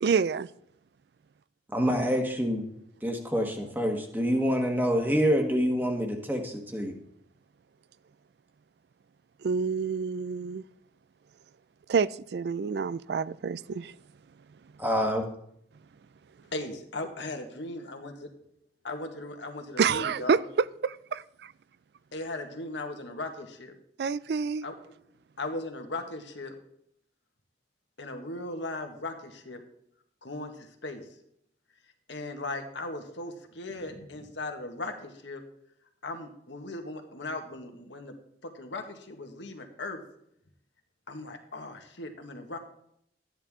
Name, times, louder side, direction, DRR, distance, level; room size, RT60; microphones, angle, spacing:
voice 1, 0.0-0.5 9.4-10.6 11.9-13.9 19.8-20.4 20.8-21.5 24.0-24.7, right 5 dB, 65° right, 0.3 m, -28 dB
voice 2, 1.7-2.6 3.0-6.9 14.8-15.2, equal, 10° right, 1.4 m, -26 dB
voice 3, 16.5-18.1 18.8-20.4 22.1-23.8 24.6-25.0 25.4-26.5 28.0-29.6 30.2-31.0 32.1-35.4 36.0-38.1 38.4-40.0 41.1-42.6, left 2 dB, 85° left, 1.7 m, -38 dB
13.0 x 10.0 x 3.7 m
head